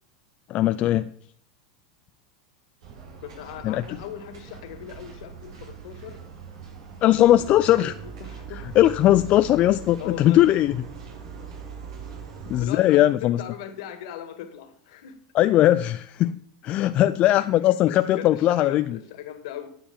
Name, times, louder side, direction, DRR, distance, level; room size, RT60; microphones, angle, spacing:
voice 1, 0.5-1.1 3.6-3.8 7.0-7.9 8.8-10.7 12.5-13.4 15.3-19.0, left 13 dB, 40° left, 11 dB, 0.4 m, -19 dB
sound 1, 2.8-12.6, right 6 dB, 75° right, 4.4 m, -41 dB
voice 2, 3.2-6.2 7.2-8.8 10.0-10.6 12.6-15.2 17.3-19.7, left 10 dB, 70° left, 8 dB, 2.0 m, -39 dB
10.0 x 6.8 x 7.1 m, 0.62 s
hypercardioid pair, 115°, 3 cm